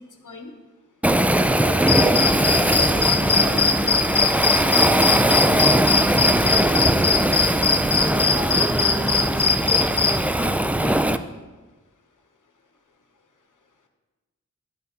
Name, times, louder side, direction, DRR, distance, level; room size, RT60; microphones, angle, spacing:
Waves surf, 1.0-11.2, right 1 dB, 5° right, 0.3 m, -20 dB
voice 1, 1.6-4.0, right 3 dB, 60° right, -1 dB, 1.7 m, -35 dB
sound 1, 1.8-10.2, left 4 dB, 35° left, 0.7 m, -22 dB
voice 2, 4.5-5.9 6.1-6.7 8.0-11.2, left 2 dB, 80° left, 4 dB, 1.0 m, -39 dB
11.0 x 7.7 x 2.9 m, 1.2 s
wide cardioid pair, 60°, 30 cm